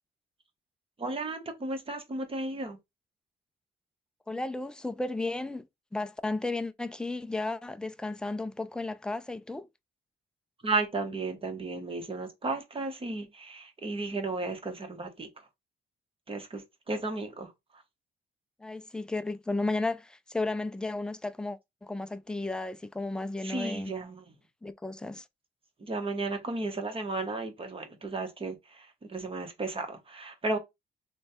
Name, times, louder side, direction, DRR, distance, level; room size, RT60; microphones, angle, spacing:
voice 1, 1.0-2.8 10.6-15.3 16.3-17.5 23.4-24.2 25.8-30.6, right 3 dB, 30° right, 1.1 m, -34 dB
voice 2, 4.3-5.7 5.9-9.7 18.6-23.9 24.6-25.2, left 2 dB, 5° left, 0.3 m, -34 dB
3.1 x 2.2 x 4.2 m
cardioid pair, 90°, 20 cm